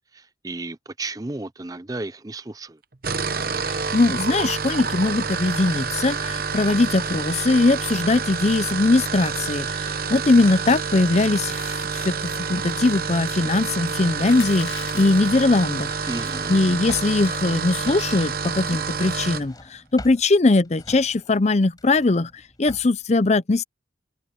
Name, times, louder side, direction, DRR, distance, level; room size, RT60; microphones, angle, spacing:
voice 1, 0.0-2.8 16.1-16.6, right 2 dB, 20° right, 0.5 m, -33 dB
sound 1, 2.9-19.5, right 5 dB, 50° right, 1.0 m, -28 dB
voice 2, 3.5-15.9 16.5-23.6, left 2 dB, 35° left, 0.6 m, -21 dB
sound 2, 14.2-15.4 16.2-16.5 16.9-17.0 17.2-17.4 18.0-18.3, left 9 dB, 85° left, 1.1 m, -39 dB
Drawer open or close, 15.5-18.6 18.8-23.1, left 1 dB, 20° left, 5.5 m, -44 dB
head